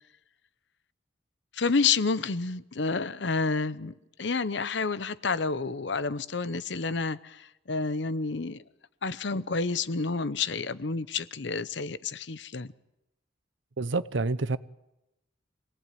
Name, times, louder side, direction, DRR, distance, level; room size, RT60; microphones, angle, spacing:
voice 1, 1.5-8.6 9.0-12.7, left 4 dB, 65° left, 0.8 m, -29 dB
voice 2, 13.8-14.6, right 3 dB, 75° right, 0.8 m, -28 dB
26.0 x 18.0 x 9.3 m
head